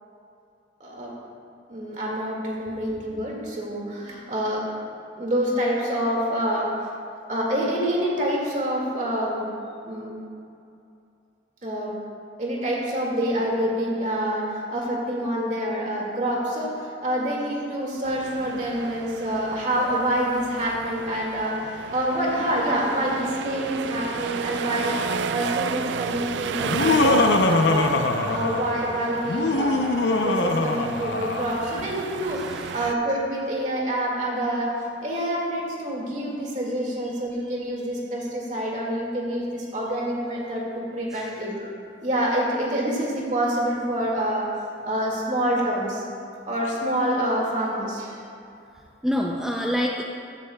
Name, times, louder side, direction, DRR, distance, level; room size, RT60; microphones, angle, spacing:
voice 1, 0.8-1.1 1.7-4.7 5.2-6.7 7.3-9.5 9.8-10.1 11.6-11.9 12.4-25.0 25.3-27.9 28.2-34.7 35.0-41.7 42.0-44.5 44.8-46.0 46.5-48.2, right 1 dB, 45° right, -3 dB, 2.1 m, -27 dB
sound 1, 18.0-32.9, right 6 dB, 80° right, 0.3 m, -33 dB
Laughter, 26.6-28.8 29.2-31.6, left 2 dB, 90° left, 0.6 m, -22 dB
voice 2, 32.3-32.8 41.1-41.4 48.2-48.3 49.0-50.0, equal, 5° right, -1 dB, 0.4 m, -28 dB
15.0 x 9.7 x 2.3 m, 2.6 s
head